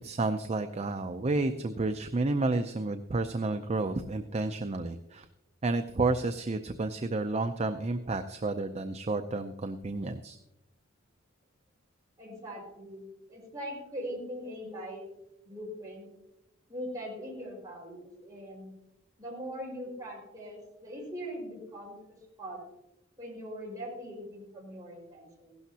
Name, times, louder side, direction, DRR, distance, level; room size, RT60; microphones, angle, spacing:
voice 1, 0.0-5.3 5.6-10.4, right 2 dB, 35° right, 7 dB, 0.5 m, -31 dB
voice 2, 12.2-15.1 15.4-16.1 16.7-18.7 19.2-21.9 22.4-22.6 23.2-25.6, equal, 20° right, -3 dB, 5.1 m, -41 dB
16.0 x 12.0 x 2.8 m, 0.89 s
head